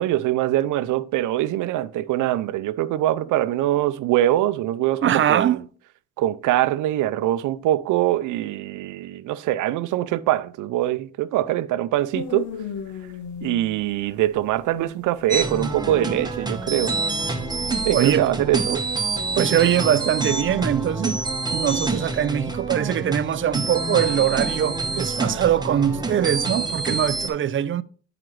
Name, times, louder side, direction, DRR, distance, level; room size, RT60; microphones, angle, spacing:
voice 1, 0.0-5.6 6.2-12.5 13.4-16.9 17.8-18.8, right 14 dB, 85° right, 0.6 m, -23 dB
voice 2, 5.0-5.6 17.9-18.3 18.7-18.8 19.3-21.2 21.5-27.8, right 10 dB, 40° right, 0.5 m, -22 dB
sound 1, 12.1-17.4, left 7 dB, 75° left, 0.9 m, -36 dB
sound 2, 15.3-27.3, right 3 dB, 15° right, 1.1 m, -27 dB
9.2 x 4.9 x 3.2 m
cardioid pair, 90°, 30 cm